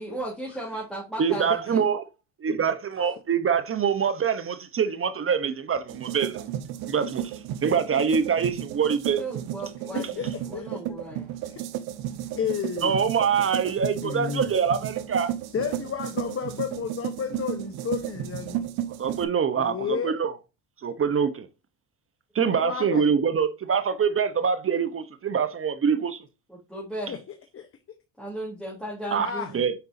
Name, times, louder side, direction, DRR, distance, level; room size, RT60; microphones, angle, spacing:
voice 1, 0.0-1.8 9.2-11.3 26.5-27.1 28.2-29.6, right 1 dB, ahead, 3.2 m, -36 dB
voice 2, 1.2-2.0 2.4-6.5 6.9-9.2 12.8-15.3 19.0-20.3 20.8-21.5 22.3-26.2 29.1-29.3 29.5-29.7, right 6 dB, 35° right, 0.9 m, -25 dB
sound 1, 5.9-19.2, right 12 dB, 75° right, 1.0 m, -33 dB
voice 3, 9.9-11.0 11.4-11.6 12.3-13.0 14.0-14.5 15.5-18.7 19.5-20.1 22.5-23.0 27.1-27.2 27.5-27.7 29.2-29.5, left 7 dB, 35° left, 1.0 m, -32 dB
6.7 x 5.3 x 2.7 m
supercardioid pair, 90°, 39 cm